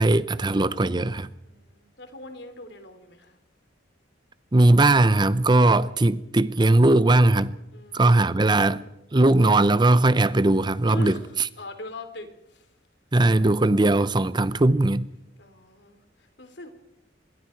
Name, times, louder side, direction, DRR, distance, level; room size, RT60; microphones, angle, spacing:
voice 1, 0.0-1.3 4.5-7.5 7.9-11.2 13.1-15.1, right 2 dB, 25° right, 0.7 m, -19 dB
voice 2, 1.4-3.4 7.7-8.4 10.8-11.3 11.6-12.6 15.4-16.0 16.4-16.7, left 1 dB, 65° left, 3.5 m, -40 dB
26.5 x 22.5 x 4.6 m
head